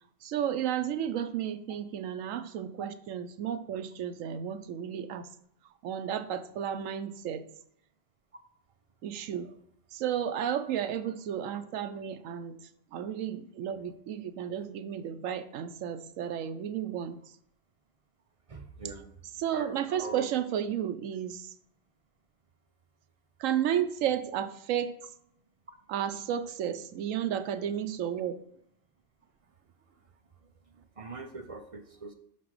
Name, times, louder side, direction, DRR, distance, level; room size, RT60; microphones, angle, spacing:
voice 1, 0.2-5.3 5.8-7.5 9.0-9.6 9.9-17.2 19.4-21.5 23.4-24.9 25.9-28.4, right 9 dB, 85° right, 11 dB, 1.0 m, -33 dB
voice 2, 18.5-19.1 19.5-20.3 31.0-32.1, right 3 dB, 40° right, 5 dB, 0.5 m, -42 dB
5.9 x 5.8 x 4.8 m, 0.73 s
omnidirectional pair, 1.3 m